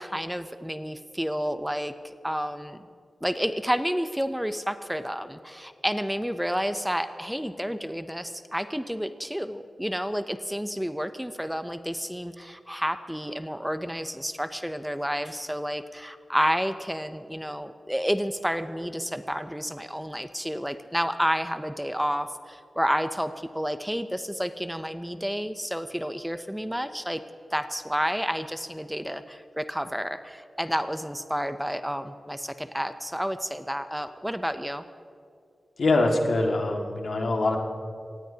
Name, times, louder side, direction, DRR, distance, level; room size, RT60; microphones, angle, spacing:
voice 1, 0.0-2.9 3.2-27.2 27.5-34.8, equal, ahead, 10 dB, 0.5 m, -30 dB
voice 2, 35.8-37.6, left 2 dB, 75° left, 1 dB, 1.8 m, -23 dB
25.5 x 18.5 x 2.8 m, 2.4 s
wide cardioid pair, 110°, 0 cm